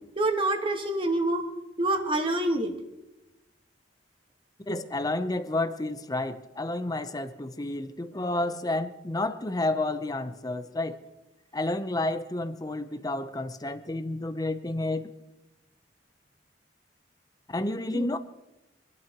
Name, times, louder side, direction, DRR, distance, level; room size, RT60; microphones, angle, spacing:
voice 1, 0.2-1.4 1.8-2.7 17.9-18.1, right 2 dB, 30° right, 4 dB, 1.7 m, -26 dB
voice 2, 4.7-11.0 11.5-15.1 17.5-18.2, left 2 dB, 20° left, 10 dB, 0.7 m, -30 dB
25.5 x 12.0 x 3.0 m, 0.97 s
head